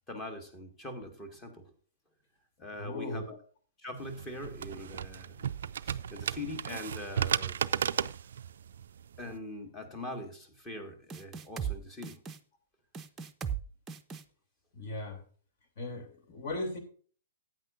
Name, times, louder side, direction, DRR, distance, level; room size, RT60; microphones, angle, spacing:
voice 1, 0.1-1.7 2.6-3.4 3.8-5.5 5.8-7.6 9.2-12.2, left 1 dB, 15° left, 7 dB, 1.9 m, -42 dB
voice 2, 2.8-3.3 14.7-15.2 15.8-16.8, left 2 dB, 45° left, 6 dB, 3.0 m, -37 dB
sound 1, 4.0-9.4, right 8 dB, 55° right, 0.3 m, -34 dB
sound 2, 11.1-11.8 12.0-12.4 12.9-13.6 13.9-14.2, right 8 dB, 15° right, 0.7 m, -36 dB
14.5 x 9.0 x 2.6 m, 0.43 s
figure-of-eight pair, 110°, 0 cm